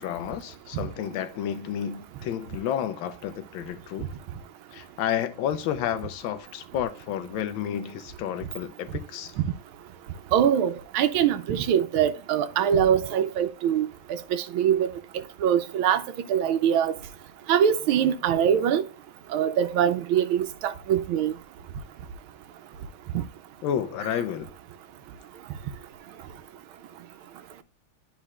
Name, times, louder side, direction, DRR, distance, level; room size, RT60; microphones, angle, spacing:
voice 1, 0.0-4.1 4.7-9.3 23.6-24.5, left 9 dB, 80° left, 1.4 m, -31 dB
voice 2, 10.3-14.9 15.4-16.0 16.3-16.9 17.5-18.8 19.3-21.3, right 9 dB, 90° right, 1.5 m, -23 dB
11.5 x 4.3 x 2.3 m
omnidirectional pair, 2.2 m